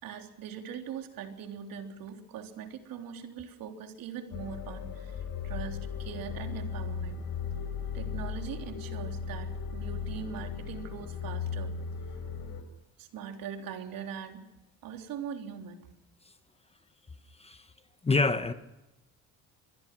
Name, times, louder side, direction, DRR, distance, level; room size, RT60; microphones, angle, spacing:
voice 1, 0.0-7.2 7.9-11.7 13.0-14.4 14.8-15.9, right 7 dB, 65° right, 4 dB, 3.6 m, -41 dB
sound 1, 4.3-12.6, left 6 dB, 70° left, 5.0 m, -37 dB
voice 2, 18.0-18.5, left 3 dB, 15° left, 10 dB, 1.2 m, -26 dB
26.5 x 21.5 x 6.1 m, 0.96 s
cardioid pair, 115°, 37 cm